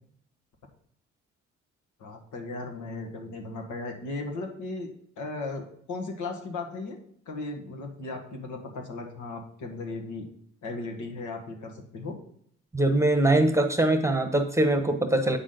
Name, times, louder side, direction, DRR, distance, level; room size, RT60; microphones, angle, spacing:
voice 1, 2.0-4.9 5.2-7.0 7.3-10.3 10.6-12.2, left 3 dB, 75° left, 3 dB, 1.6 m, -36 dB
voice 2, 12.7-15.4, right 1 dB, 10° right, 6 dB, 1.0 m, -22 dB
8.4 x 6.1 x 3.9 m, 0.66 s
cardioid pair, 90°, 30 cm